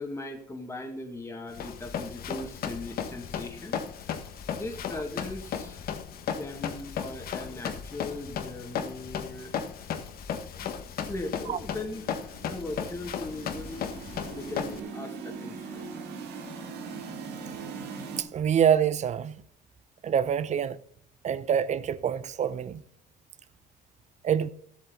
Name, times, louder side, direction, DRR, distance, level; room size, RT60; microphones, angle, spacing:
voice 1, 0.0-4.2 4.5-6.0 6.3-9.7 10.6-10.7 11.1-14.0 14.3-15.9, left 2 dB, 15° left, 1.9 m, -39 dB
Run, 1.5-14.8, left 7 dB, 60° left, 1.3 m, -35 dB
sound 1, 11.8-18.2, right 5 dB, 85° right, 2.5 m, -40 dB
voice 2, 18.2-19.4 20.0-20.8 21.2-22.8 24.2-24.5, right 8 dB, 45° right, 0.7 m, -26 dB
13.5 x 8.3 x 3.9 m
cardioid pair, 110°, 17 cm